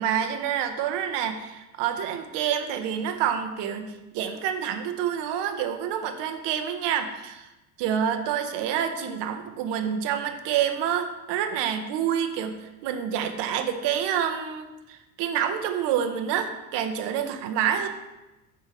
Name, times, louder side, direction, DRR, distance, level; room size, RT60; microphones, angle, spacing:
voice 1, 0.0-7.5 7.8-17.9, right 9 dB, 60° right, 6 dB, 0.9 m, -28 dB
6.5 x 3.9 x 5.3 m, 1.0 s
hypercardioid pair, 65°, 47 cm